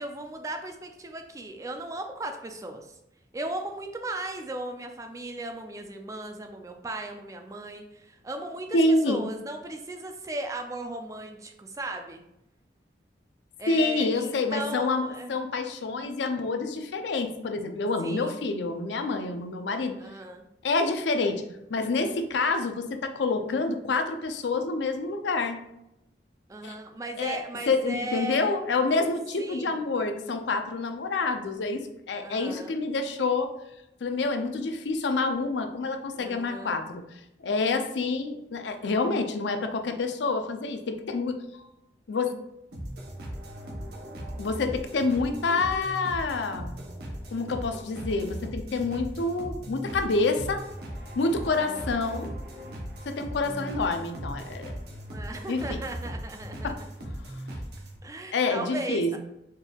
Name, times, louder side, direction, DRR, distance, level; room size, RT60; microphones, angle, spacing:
voice 1, 0.0-2.9 3.3-12.2 13.6-15.4 18.0-18.4 20.0-20.5 26.5-28.5 29.4-29.8 32.2-32.7 36.1-36.8 51.4-52.0 53.4-53.9 55.1-56.7 58.0-59.2, right 2 dB, 20° right, 5 dB, 0.3 m, -37 dB
voice 2, 8.7-9.2 13.7-20.0 20.6-21.4 21.7-25.6 26.6-26.8 27.2-27.4 27.7-33.5 34.0-37.0 37.4-41.7 42.1-42.3 44.4-46.8 47.3-50.6 51.2-52.3 53.1-54.8 55.5-55.9 56.6-57.1 58.3-59.2, left 3 dB, 80° left, 7 dB, 0.5 m, -27 dB
sound 1, 42.7-58.0, equal, 65° right, 0.9 m, -38 dB
4.4 x 3.4 x 2.3 m, 0.86 s
head